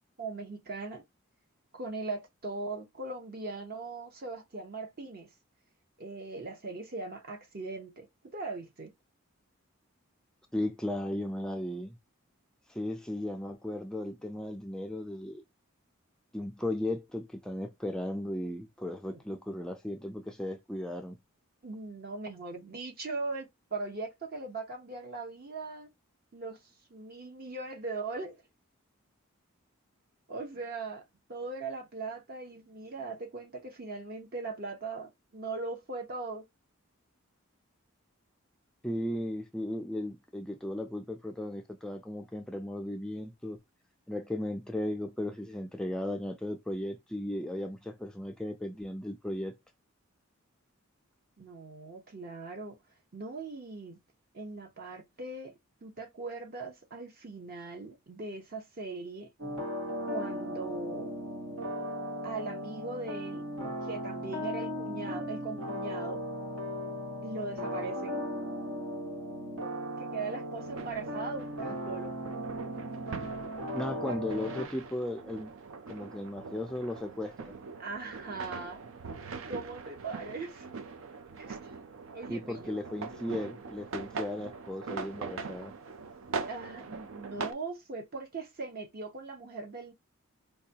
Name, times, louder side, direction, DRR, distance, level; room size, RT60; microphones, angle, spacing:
voice 1, 0.2-1.0 1.7-5.3 6.0-8.9 19.1-19.2 21.6-25.9 26.3-26.6 26.9-28.4 30.3-36.4 51.4-52.8 53.1-54.0 54.3-55.5 55.8-59.3 60.0-61.1 62.2-63.5 63.8-66.2 67.2-68.2 70.0-72.2 74.1-74.2 77.8-78.8 79.5-80.7 81.4-81.7 82.1-82.8 86.5-89.9, right 3 dB, 45° right, 0.8 m, -40 dB
voice 2, 10.5-12.0 12.7-15.4 16.3-21.2 38.8-43.6 44.1-49.5 73.7-75.5 75.9-77.5 82.3-85.7, left 1 dB, 5° left, 0.3 m, -36 dB
sound 1, 59.4-74.7, equal, 90° right, 1.3 m, -37 dB
sound 2, 70.6-87.5, right 4 dB, 70° right, 0.5 m, -42 dB
4.6 x 2.2 x 2.8 m
head